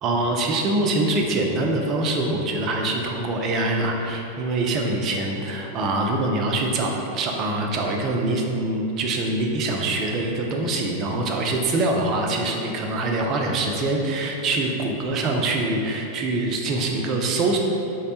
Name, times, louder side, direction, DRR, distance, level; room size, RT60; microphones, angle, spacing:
voice 1, 0.0-17.6, right 2 dB, 35° right, 1 dB, 0.3 m, -24 dB
3.4 x 2.0 x 2.8 m, 2.8 s
figure-of-eight pair, 90°, 0 cm